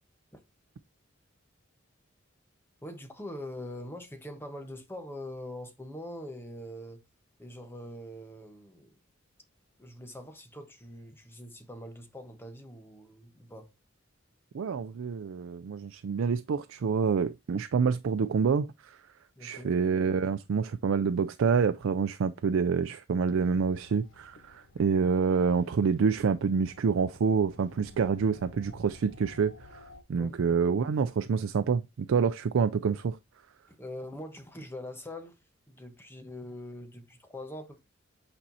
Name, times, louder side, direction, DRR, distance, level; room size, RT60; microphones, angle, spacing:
voice 1, 2.8-7.0 7.4-9.0 9.8-13.7 19.4-19.7 30.1-30.3 33.7-35.4 35.7-37.8, left 1 dB, 10° left, 1.0 m, -43 dB
voice 2, 14.5-18.7 19.4-29.5 30.1-33.2, right 5 dB, 85° right, 0.4 m, -27 dB
sound 1, 23.3-30.0, left 3 dB, 85° left, 0.9 m, -54 dB
8.7 x 4.3 x 2.7 m
head